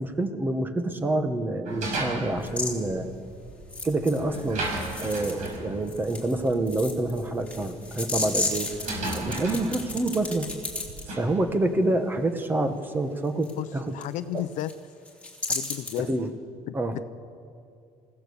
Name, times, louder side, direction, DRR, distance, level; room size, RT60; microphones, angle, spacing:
voice 1, 0.0-3.1 3.8-4.7 5.0-8.7 9.1-10.5 11.1-14.0 14.3-14.4 16.0-16.3 16.7-16.9, right 2 dB, 15° right, 7 dB, 1.3 m, -27 dB
sound 1, 1.7-11.4, right 2 dB, 65° right, 6.5 m, -36 dB
sound 2, 2.4-2.7 3.7-5.6 5.9-11.0 13.4-13.5 14.0-14.1 14.4-14.7 15.1-16.0, left 3 dB, 10° left, 2.8 m, -33 dB
voice 2, 13.9-14.7 15.5-16.1 16.7-17.0, left 14 dB, 70° left, 13 dB, 0.7 m, -32 dB
27.5 x 16.5 x 7.1 m, 2.4 s
cardioid pair, 170°, 13 cm